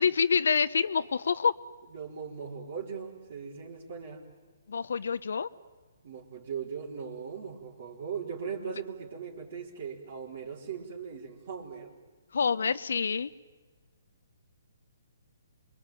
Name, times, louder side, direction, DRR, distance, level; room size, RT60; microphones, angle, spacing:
voice 1, 0.0-1.5 4.7-5.5 12.3-13.3, left 6 dB, 75° left, 14 dB, 0.8 m, -27 dB
voice 2, 1.9-4.2 6.0-11.9, right 6 dB, 55° right, -4 dB, 4.3 m, -39 dB
27.5 x 22.5 x 9.2 m, 1.4 s
hypercardioid pair, 145°, 0 cm